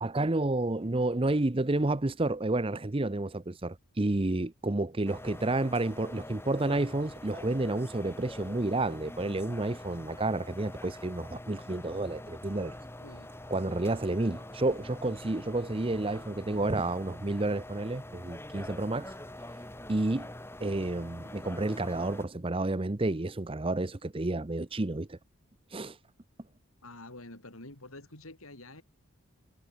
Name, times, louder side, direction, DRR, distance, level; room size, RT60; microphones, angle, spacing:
voice 1, 0.0-12.8 13.5-19.1 19.9-20.3 20.6-25.2 25.7-26.0, right 2 dB, 25° right, 0.7 m, -30 dB
sound 1, 5.1-22.3, left 1 dB, 10° left, 2.7 m, -45 dB
voice 2, 26.8-28.8, left 2 dB, 80° left, 5.1 m, -47 dB
head